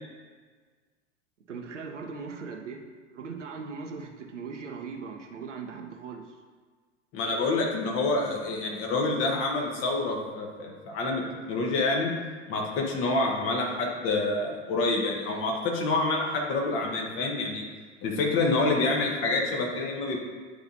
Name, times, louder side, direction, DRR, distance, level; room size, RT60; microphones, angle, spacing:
voice 1, 1.5-2.8 3.1-6.2, right 5 dB, 75° right, 2 dB, 0.8 m, -39 dB
voice 2, 7.1-11.2 11.5-12.1 12.5-17.6 18.0-20.2, left 2 dB, 35° left, 0 dB, 1.2 m, -27 dB
9.4 x 4.0 x 2.7 m, 1.5 s
figure-of-eight pair, 85°, 37 cm